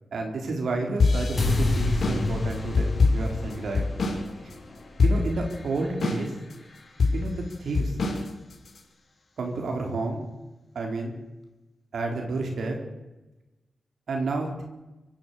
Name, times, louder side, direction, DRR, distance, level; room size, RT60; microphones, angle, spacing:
voice 1, 0.1-3.8 5.0-6.3 7.1-8.0 9.4-10.3 10.7-11.1 11.9-12.8 14.1-14.6, right 3 dB, 75° right, 2 dB, 4.0 m, -30 dB
sound 1, 1.0-4.2 4.5-4.6 5.0-5.5 6.0-6.5 7.0-8.8, left 3 dB, 65° left, 5.3 m, -24 dB
sound 2, 1.4-7.5, left 2 dB, 40° left, 5.9 m, -31 dB
24.5 x 13.5 x 8.3 m, 1.0 s
wide cardioid pair, 105°, 0 cm